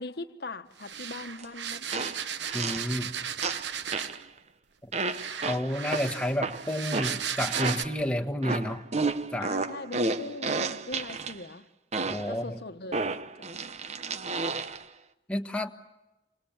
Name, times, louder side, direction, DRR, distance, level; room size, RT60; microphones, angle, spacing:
voice 1, 0.0-2.2 9.4-11.7 12.3-13.5, left 2 dB, 60° left, 1.3 m, -41 dB
sound 1, 0.8-4.3 5.1-7.8, right 8 dB, 85° right, 1.1 m, -35 dB
sound 2, 1.4-1.5 1.9-2.9 3.4-4.2 4.9-8.0 8.4-11.4 11.9-12.4 12.9-14.8, right 3 dB, 40° right, 0.9 m, -32 dB
voice 2, 2.5-3.1 5.4-8.8 9.3-9.5 12.1-12.6 15.3-15.7, left 1 dB, 5° left, 1.5 m, -30 dB
28.5 x 28.0 x 7.2 m
head